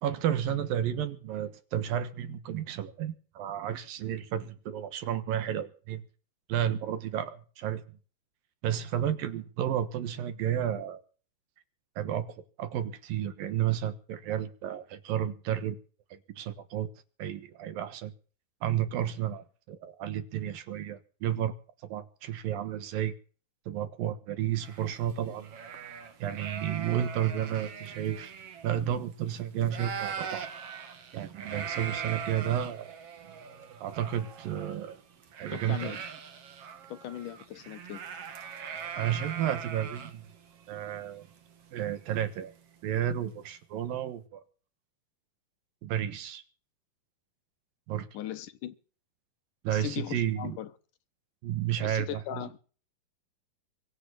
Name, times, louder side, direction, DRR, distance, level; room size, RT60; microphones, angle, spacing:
voice 1, 0.0-6.0 6.5-7.8 8.6-11.0 12.0-12.3 12.6-15.8 16.1-16.9 17.2-18.1 18.6-21.5 21.8-23.1 23.7-25.5 26.2-28.3 28.6-30.5 31.1-33.0 33.8-35.0 35.4-36.0 39.0-40.3 40.7-41.2 41.7-42.5 42.8-44.4 45.8-46.4 47.9-48.1 49.6-50.6 51.4-52.5, right 10 dB, 70° right, 3.0 m, -32 dB
sound 1, 24.6-29.3 29.6-42.5, right 7 dB, 45° right, 2.4 m, -41 dB
voice 2, 35.5-36.0 36.9-38.0 48.1-48.7 49.7-50.7 51.8-52.6, left 11 dB, 70° left, 2.3 m, -38 dB
23.5 x 9.0 x 6.9 m
omnidirectional pair, 4.5 m